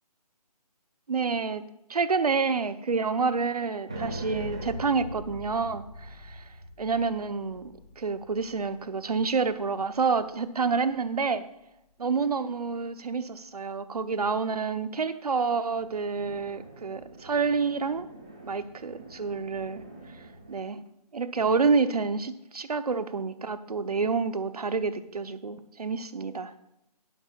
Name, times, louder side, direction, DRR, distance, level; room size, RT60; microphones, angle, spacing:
voice 1, 1.1-1.6 1.9-6.4 6.8-11.4 12.0-18.1 18.4-19.8 20.5-20.8 21.1-26.5, right 4 dB, 70° right, 11 dB, 0.9 m, -28 dB
sound 1, 3.9-10.4 15.7-20.6, right 1 dB, 10° right, 0.4 m, -43 dB
11.5 x 11.0 x 2.4 m, 0.85 s
hypercardioid pair, 170°, 21 cm